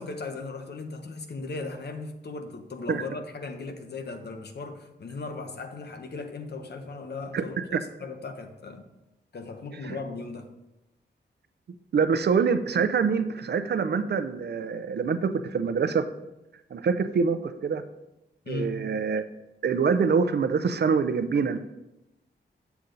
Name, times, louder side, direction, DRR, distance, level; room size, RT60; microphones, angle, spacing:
voice 1, 0.0-8.9 9.3-10.5 18.4-18.8, left 3 dB, 60° left, 6 dB, 1.0 m, -37 dB
voice 2, 11.9-16.1 16.7-17.8 18.5-19.2 19.6-21.6, right 5 dB, 65° right, 10 dB, 0.6 m, -25 dB
8.6 x 7.0 x 3.9 m, 0.95 s
wide cardioid pair, 140°, 19 cm